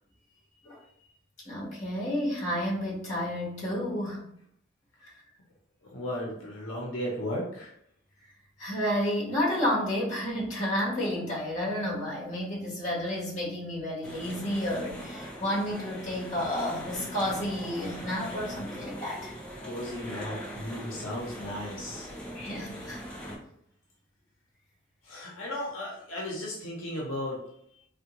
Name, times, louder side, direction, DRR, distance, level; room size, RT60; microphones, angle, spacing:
voice 1, 1.4-4.2 5.0-5.1 8.6-19.3 22.3-23.0, left 1 dB, 35° left, -5 dB, 1.1 m, -31 dB
voice 2, 5.8-7.7 19.6-22.1 25.0-27.4, left 1 dB, 70° left, -3 dB, 0.7 m, -35 dB
sound 1, 14.0-23.4, equal, 5° left, 0.4 m, -41 dB
3.4 x 2.2 x 2.9 m, 0.71 s
head